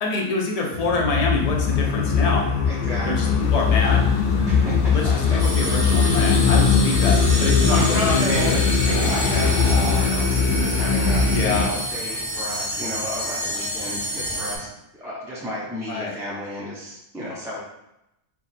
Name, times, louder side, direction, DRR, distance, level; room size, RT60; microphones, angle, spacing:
voice 1, 0.0-2.5 3.1-4.1 4.9-8.5 11.3-11.7 15.9-16.2, left 2 dB, 40° left, 0 dB, 0.6 m, -26 dB
sound 1, 0.7-11.7, left 5 dB, 85° left, 0.9 m, -20 dB
voice 2, 2.7-3.4 4.5-5.5 6.0-6.3 7.7-17.6, left 1 dB, 5° right, -8 dB, 0.5 m, -32 dB
sound 2, 3.4-14.7, right 1 dB, 40° right, 1.1 m, -39 dB
sound 3, 5.4-14.6, right 1 dB, 65° right, 1.4 m, -29 dB
4.6 x 2.0 x 4.1 m, 0.87 s
omnidirectional pair, 1.2 m